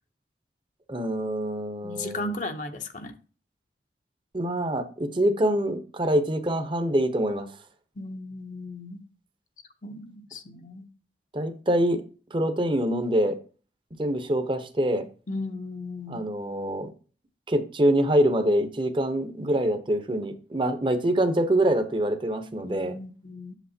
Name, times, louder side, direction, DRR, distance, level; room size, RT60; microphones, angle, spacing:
voice 1, 0.9-2.3 4.3-7.5 11.3-12.0 12.3-13.4 14.0-15.1 16.1-16.9 17.5-23.0, right 1 dB, 30° right, 8 dB, 0.8 m, -25 dB
voice 2, 1.8-3.1 8.0-9.0 9.8-10.9 15.3-16.2 22.6-23.5, left 2 dB, 45° left, 5 dB, 0.7 m, -36 dB
8.1 x 7.3 x 2.8 m, 0.37 s
head